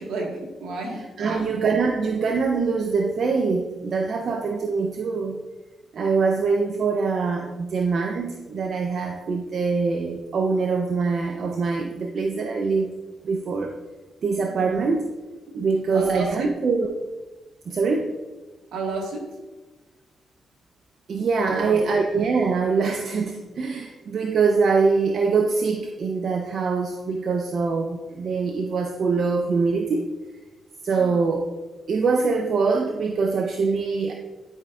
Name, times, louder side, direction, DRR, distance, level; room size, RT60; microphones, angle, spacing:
voice 1, 0.0-1.5 14.5-14.8 15.9-16.5 18.7-19.3 21.4-21.8 30.9-31.2, right 3 dB, 80° right, -1 dB, 1.5 m, -31 dB
voice 2, 1.2-5.4 5.9-12.9 13.2-13.7 14.2-15.1 15.5-17.0 17.7-18.1 21.1-30.1 30.8-31.5 31.9-34.1, right 4 dB, 65° right, 4 dB, 0.6 m, -23 dB
10.5 x 4.9 x 2.4 m, 1.2 s
supercardioid pair, 55°, 0 cm